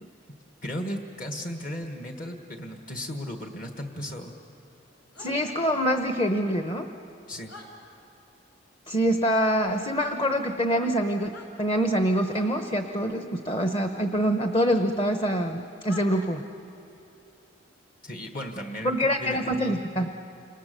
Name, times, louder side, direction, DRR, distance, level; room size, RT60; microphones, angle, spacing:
voice 1, 0.6-4.3 7.3-7.5 18.0-19.8, equal, 45° left, 4 dB, 1.5 m, -36 dB
sound 1, 5.1-5.4 7.5-7.7 9.6-9.8 11.2-11.5 12.3-12.5 14.6-14.7 15.8-16.1, left 3 dB, 65° left, 4.9 m, -45 dB
voice 2, 5.2-6.9 8.9-11.3 11.6-16.4 18.8-20.1, equal, 30° left, 6 dB, 0.9 m, -25 dB
29.5 x 27.5 x 6.8 m, 2.8 s
head